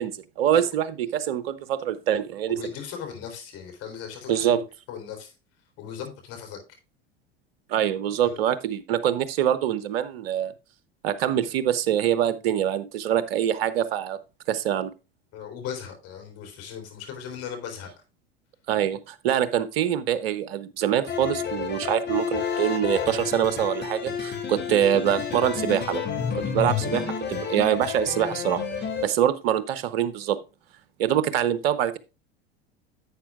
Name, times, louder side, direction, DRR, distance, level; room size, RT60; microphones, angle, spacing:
voice 1, 0.0-2.6 4.3-4.6 7.7-10.5 11.0-14.2 14.5-14.9 18.7-26.0 26.5-27.0 27.3-28.6 29.0-30.4 31.0-32.0, right 10 dB, 70° right, 15 dB, 0.9 m, -24 dB
voice 2, 2.5-4.6 4.9-5.3 5.8-6.6 8.2-8.4 15.3-17.9, left 8 dB, 50° left, 5 dB, 3.9 m, -37 dB
sound 1, 21.1-29.1, left 7 dB, 35° left, 2.7 m, -30 dB
11.5 x 8.0 x 2.4 m, 0.28 s
hypercardioid pair, 80°, 31 cm